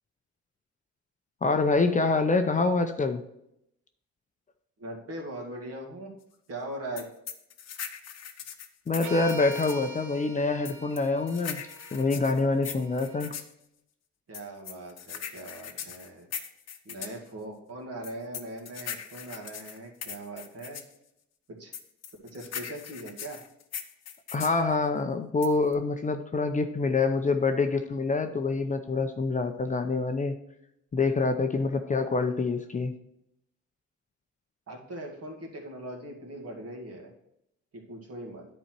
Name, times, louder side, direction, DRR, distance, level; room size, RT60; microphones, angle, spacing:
voice 1, 1.4-3.2 8.9-11.6 11.9-13.4 24.3-30.3 30.9-32.9, left 3 dB, 25° left, 6 dB, 0.6 m, -26 dB
voice 2, 4.8-6.1 6.5-7.1 14.3-16.3 16.8-20.8 21.5-21.7 22.2-23.4 31.5-32.0 34.7-37.1 37.7-38.5, right 1 dB, 50° right, 0 dB, 2.3 m, -40 dB
sound 1, 7.0-9.9 10.7-13.5 14.3-17.2 18.0-20.9 21.7-24.6 25.4-25.7, left 8 dB, 60° left, 0.9 m, -40 dB
sound 2, 9.0-13.2, right 3 dB, 75° right, 1.0 m, -44 dB
9.9 x 4.3 x 4.5 m, 0.79 s
cardioid pair, 90°, 30 cm